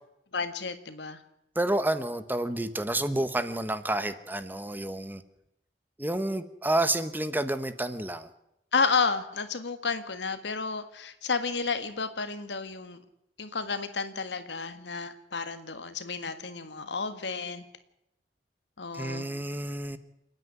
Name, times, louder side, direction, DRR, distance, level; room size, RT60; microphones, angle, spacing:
voice 1, 0.3-1.2 8.7-13.0 13.4-17.7 18.8-19.3, left 4 dB, 85° left, 10 dB, 1.7 m, -31 dB
voice 2, 1.5-5.2 6.0-8.3 18.9-20.0, right 1 dB, 10° right, 11 dB, 1.1 m, -29 dB
28.5 x 9.8 x 9.6 m, 0.84 s
head